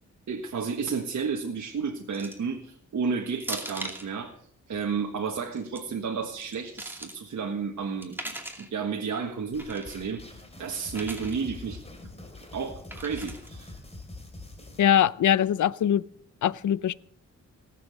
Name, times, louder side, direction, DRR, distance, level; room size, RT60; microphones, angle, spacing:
voice 1, 0.3-4.3 4.7-8.2 8.6-11.8 12.5-13.7, right 5 dB, 65° right, 1.5 m, -32 dB
sound 1, 2.1-2.5 3.4-4.1 5.4-5.8 6.4-7.2 8.0-8.7 9.6-10.0 10.9-11.4 12.9-13.5, right 1 dB, 5° right, 2.5 m, -39 dB
sound 2, 9.5-14.8, left 2 dB, 20° left, 2.9 m, -44 dB
voice 2, 14.8-16.0 16.4-16.9, left 10 dB, 75° left, 0.6 m, -22 dB
18.5 x 7.7 x 6.6 m
wide cardioid pair, 100°, 30 cm